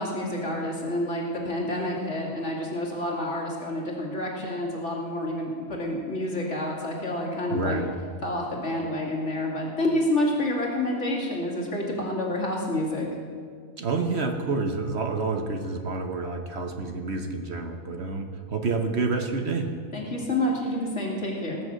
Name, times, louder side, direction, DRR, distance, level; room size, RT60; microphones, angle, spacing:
voice 1, 0.0-7.8 8.2-13.1 19.9-21.6, left 1 dB, 55° left, -2 dB, 2.6 m, -28 dB
voice 2, 7.5-7.9 13.8-19.7, right 3 dB, 55° right, 5 dB, 1.1 m, -28 dB
18.0 x 6.4 x 7.5 m, 2.1 s
omnidirectional pair, 1.4 m